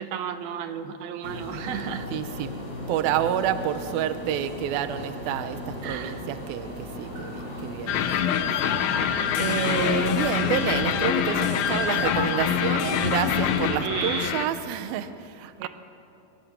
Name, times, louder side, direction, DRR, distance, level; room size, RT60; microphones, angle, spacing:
voice 1, 0.0-2.1 5.8-6.2 13.8-14.3 15.6-15.7, right 9 dB, 65° right, 8 dB, 2.6 m, -33 dB
sound 1, 1.2-13.7, left 1 dB, 20° left, 5.5 m, -36 dB
voice 2, 2.1-2.5 2.9-8.8 9.4-15.7, right 10 dB, 85° right, 10 dB, 2.1 m, -29 dB
sound 2, 7.9-14.5, left 9 dB, 85° left, 3.4 m, -25 dB
24.5 x 24.0 x 6.9 m, 2.7 s
omnidirectional pair, 5.2 m